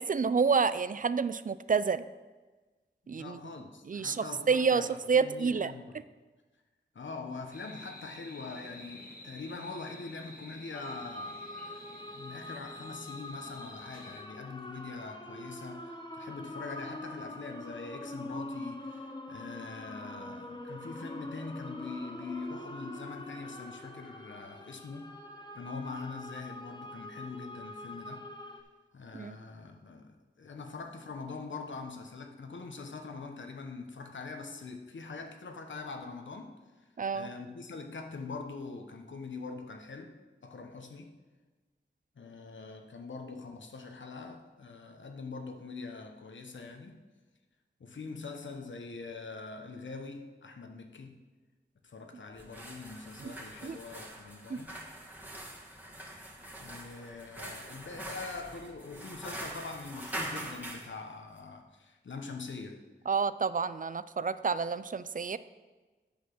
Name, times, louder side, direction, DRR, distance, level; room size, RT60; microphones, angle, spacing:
voice 1, 0.0-2.1 3.1-3.4 3.9-5.7 29.1-29.4 37.0-37.3 53.2-53.3 53.6-53.8 54.5-54.6 63.1-65.4, right 5 dB, 45° right, 15 dB, 0.4 m, -29 dB
voice 2, 3.0-6.0 6.9-25.1 25.5-28.2 28.9-36.6 37.1-40.1 40.4-41.1 42.2-47.0 47.8-51.1 51.8-54.8 56.6-62.8, left 4 dB, 85° left, 5 dB, 1.0 m, -43 dB
sound 1, 7.5-14.2, left 1 dB, 50° left, 1.6 m, -50 dB
sound 2, 10.7-28.6, left 1 dB, 25° left, 1.1 m, -44 dB
sound 3, 52.3-60.9, right 1 dB, 10° right, 1.8 m, -43 dB
8.6 x 5.9 x 6.0 m, 1.3 s
wide cardioid pair, 55°, 19 cm